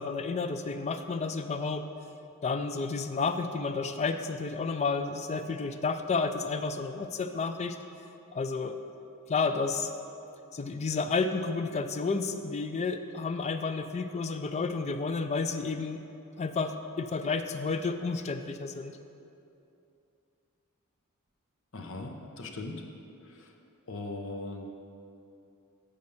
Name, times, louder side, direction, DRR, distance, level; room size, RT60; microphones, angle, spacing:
voice 1, 0.0-1.9 2.4-7.8 8.3-8.8 9.3-9.9 10.5-16.0 16.4-19.0, left 4 dB, 30° left, 8 dB, 0.4 m, -31 dB
voice 2, 21.7-22.8 23.2-23.6 23.9-24.6, left 2 dB, 60° left, 3 dB, 0.8 m, -39 dB
6.6 x 5.1 x 7.0 m, 2.7 s
head